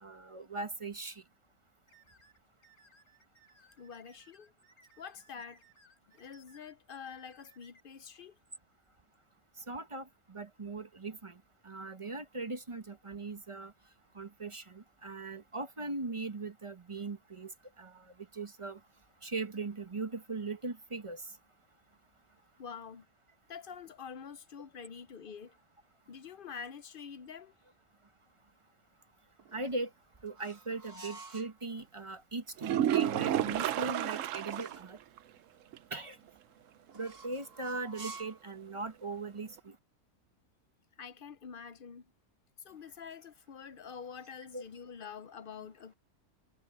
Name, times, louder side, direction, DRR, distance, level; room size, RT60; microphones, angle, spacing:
voice 1, 0.0-1.2 9.7-13.7 14.1-18.0 18.3-18.8 19.2-21.2 29.5-29.9 30.2-35.0 35.9-36.2 36.9-39.7 44.5-44.6, right 3 dB, 25° right, 0.9 m, -39 dB
sound 1, 1.9-7.8, right 1 dB, 45° left, 3.8 m, -64 dB
voice 2, 3.8-4.5 5.0-5.6 6.1-8.4 22.6-23.1 23.5-25.5 26.1-27.5 41.0-42.1 42.6-45.9, left 6 dB, 60° left, 0.5 m, -46 dB
sound 2, 29.4-31.6 33.5-35.0 36.9-38.5, right 3 dB, 85° right, 3.7 m, -50 dB
sound 3, 32.6-34.8 35.2-35.3 35.7-35.8 39.6-39.7, right 11 dB, 65° right, 0.9 m, -31 dB
omnidirectional pair, 1.6 m